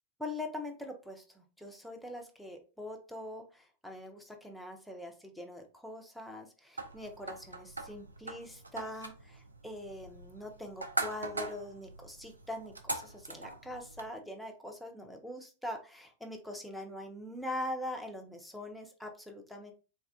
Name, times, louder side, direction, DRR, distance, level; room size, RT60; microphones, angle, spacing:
voice 1, 0.2-19.7, left 1 dB, ahead, 2 dB, 0.6 m, -43 dB
sound 1, 6.8-14.1, right 2 dB, 80° right, 0.4 m, -41 dB
3.4 x 2.4 x 2.3 m, 0.34 s
figure-of-eight pair, 90°, 0 cm